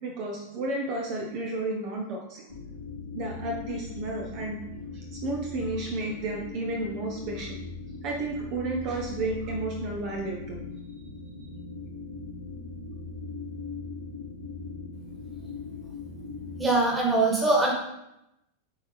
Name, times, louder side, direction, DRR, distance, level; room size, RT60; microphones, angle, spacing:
voice 1, 0.0-2.4 3.1-4.6 5.1-7.6 8.0-10.6, right 2 dB, 40° right, 0 dB, 0.8 m, -32 dB
sound 1, 2.5-16.6, left 4 dB, 90° left, 1.6 m, -40 dB
voice 2, 16.6-17.7, right 2 dB, 10° right, -2 dB, 1.7 m, -22 dB
7.0 x 4.3 x 3.4 m, 0.86 s
figure-of-eight pair, 90°, 0 cm